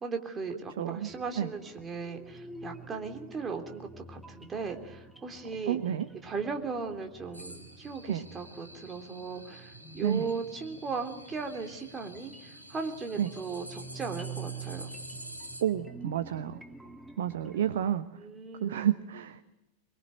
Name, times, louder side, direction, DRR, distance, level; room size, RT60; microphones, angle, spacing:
voice 1, 0.0-5.8 6.2-14.9 18.2-18.9, right 4 dB, 20° right, 5 dB, 3.4 m, -37 dB
voice 2, 0.8-1.1 1.4-1.5 5.7-6.1 8.1-8.3 10.0-10.3 13.2-13.3 15.6-16.6 17.2-18.0 18.6-19.4, right 10 dB, 60° right, 12 dB, 1.0 m, -30 dB
sound 1, 1.1-17.9, right 4 dB, 5° right, 2.1 m, -48 dB
sound 2, 7.3-15.6, equal, 85° right, 2.8 m, -48 dB
24.0 x 23.0 x 9.2 m, 0.98 s
figure-of-eight pair, 90°, 0 cm